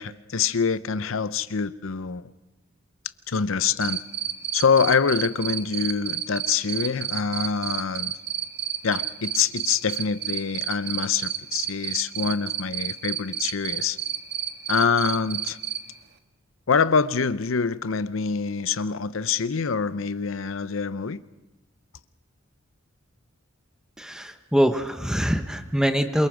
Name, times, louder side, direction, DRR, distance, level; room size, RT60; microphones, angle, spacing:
voice 1, 0.0-2.2 3.3-4.0 4.5-8.1 8.8-14.0 14.7-15.6 16.7-21.2, left 5 dB, 75° left, 0.7 m, -25 dB
Cricket, 3.8-15.8, right 10 dB, 55° right, 1.6 m, -29 dB
voice 2, 24.0-26.3, equal, 5° right, 1.0 m, -23 dB
27.5 x 23.5 x 5.0 m
head